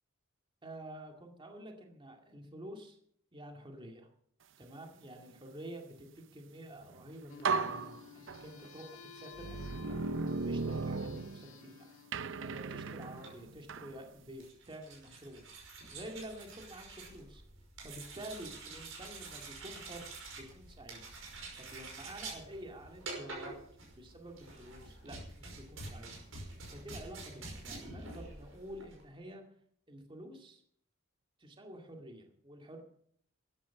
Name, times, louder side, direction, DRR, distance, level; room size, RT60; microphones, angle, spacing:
voice 1, 0.6-3.0 3.3-4.1 4.6-10.1 10.4-15.4 15.7-17.4 17.8-21.0 21.6-23.6 23.9-26.1 26.7-29.4 29.9-30.6 31.4-32.8, right 1 dB, 25° right, 2 dB, 2.1 m, -49 dB
sound 1, 6.9-7.0 7.4-8.7 9.4-11.7 12.1-13.9, right 4 dB, 65° right, 0.6 m, -36 dB
sound 2, 7.3-13.3, left 5 dB, 90° left, 1.7 m, -54 dB
sound 3, 13.1-29.0, right 3 dB, 80° right, 5.6 m, -48 dB
13.0 x 11.0 x 7.1 m, 0.64 s
head